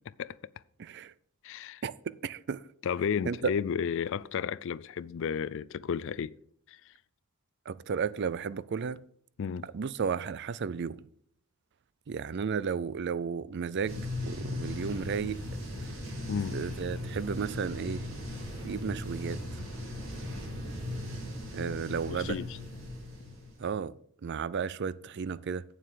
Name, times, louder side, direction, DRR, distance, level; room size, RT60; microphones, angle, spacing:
voice 1, 0.8-1.1 1.8-2.6 3.2-3.4 7.7-9.0 9.7-11.0 12.1-15.4 16.5-18.0 18.6-19.4 21.5-22.4 23.6-23.9 24.2-25.6, right 6 dB, 55° right, 0.4 m, -33 dB
voice 2, 1.4-1.8 2.8-6.4 6.7-6.8 9.4-9.7 16.3-16.6 22.1-22.6, left 7 dB, 65° left, 0.4 m, -33 dB
sound 1, 13.9-23.7, left 1 dB, 75° right, 3.8 m, -38 dB
8.5 x 7.4 x 6.7 m
head